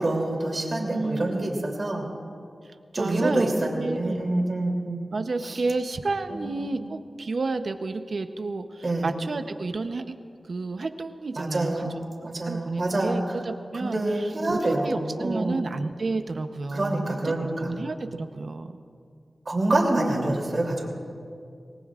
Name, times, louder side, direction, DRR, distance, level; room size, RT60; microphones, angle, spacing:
voice 1, 0.0-2.0 2.9-5.0 5.4-5.6 6.3-6.7 8.8-9.1 11.4-11.9 12.2-13.2 13.8-15.6 16.7-17.7 19.5-20.9, right 2 dB, 45° right, -1 dB, 2.9 m, -26 dB
voice 2, 0.9-1.5 2.6-4.2 5.1-10.0 10.5-12.0 12.4-18.7, right 3 dB, 60° right, 8 dB, 0.8 m, -31 dB
26.0 x 19.0 x 2.5 m, 2.3 s
wide cardioid pair, 110°, 0 cm